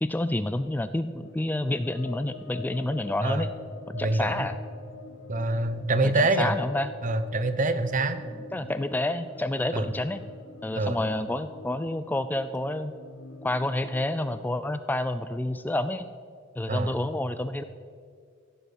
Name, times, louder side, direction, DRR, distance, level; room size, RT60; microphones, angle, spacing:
voice 1, 0.0-3.5 4.0-4.6 6.0-6.9 8.5-10.2 10.6-12.9 13.4-16.1 16.6-17.6, left 1 dB, 10° left, 12 dB, 0.3 m, -29 dB
sound 1, 1.2-14.4, left 4 dB, 90° left, 0.8 m, -46 dB
voice 2, 3.9-4.5 5.3-6.5 7.0-8.2 9.7-9.9 10.8-11.0 16.7-17.0, right 2 dB, 40° right, 11 dB, 0.8 m, -25 dB
15.5 x 7.9 x 6.4 m, 2.2 s
head